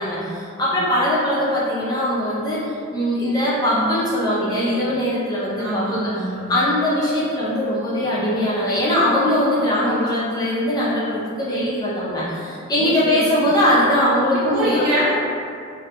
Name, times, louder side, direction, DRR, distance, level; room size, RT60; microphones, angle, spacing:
voice 1, 0.0-2.6 2.9-6.0 6.5-14.9, left 1 dB, 20° left, -8 dB, 0.5 m, -21 dB
voice 2, 5.6-6.5 9.8-10.3 12.8-13.5 14.5-15.2, right 1 dB, 85° right, -10 dB, 1.0 m, -26 dB
2.3 x 2.2 x 2.7 m, 2.3 s
head